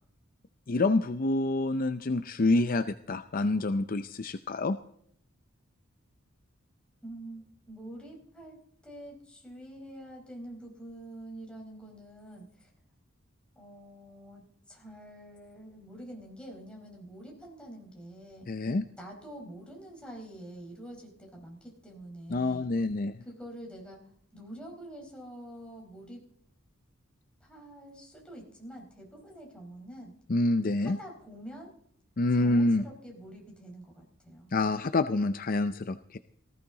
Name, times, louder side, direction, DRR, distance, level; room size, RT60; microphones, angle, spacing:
voice 1, 0.7-4.8 18.5-18.9 22.3-23.2 30.3-31.0 32.2-32.8 34.5-36.2, left 2 dB, 45° left, 10 dB, 0.5 m, -27 dB
voice 2, 7.0-8.6 8.8-12.7 13.5-18.5 18.9-22.7 23.2-24.0 24.3-26.2 27.4-30.1 30.8-31.7 32.3-34.5, right 1 dB, 5° left, -1 dB, 4.5 m, -46 dB
18.5 x 15.0 x 4.0 m, 0.66 s
head